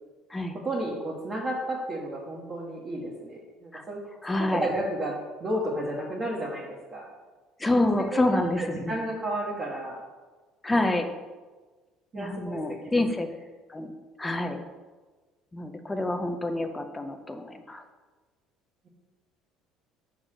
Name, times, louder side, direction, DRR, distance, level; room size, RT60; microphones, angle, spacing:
voice 1, 0.6-4.0 4.3-7.1 7.7-10.0 12.1-13.0, right 1 dB, 30° right, -5 dB, 1.2 m, -32 dB
voice 2, 4.2-4.7 7.6-8.9 10.6-11.1 12.2-13.3 13.7-13.9 14.2-14.6 15.5-17.8, left 2 dB, 10° left, 6 dB, 0.6 m, -27 dB
6.2 x 4.0 x 6.3 m, 1.3 s
cardioid pair, 130°, 0 cm